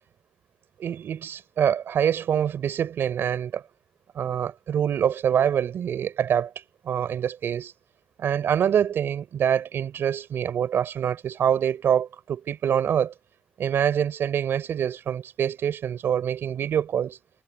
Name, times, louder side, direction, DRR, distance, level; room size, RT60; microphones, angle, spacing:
voice 1, 0.8-3.6 4.2-6.5 6.8-7.7 8.2-13.1 13.6-17.2, right 9 dB, 85° right, 5.5 m, -25 dB
cardioid pair, 100°, 4 cm